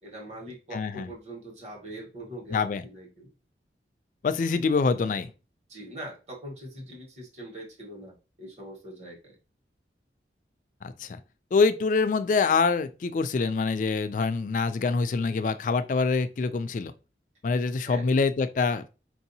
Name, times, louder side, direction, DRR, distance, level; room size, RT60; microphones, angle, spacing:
voice 1, 0.0-3.3 5.7-9.4 17.8-18.0, right 1 dB, 40° right, 1.3 m, -42 dB
voice 2, 0.7-1.1 2.5-2.8 4.2-5.3 10.8-11.2 11.5-16.9 17.4-18.8, left 4 dB, 45° left, 0.3 m, -25 dB
4.5 x 2.7 x 2.7 m
head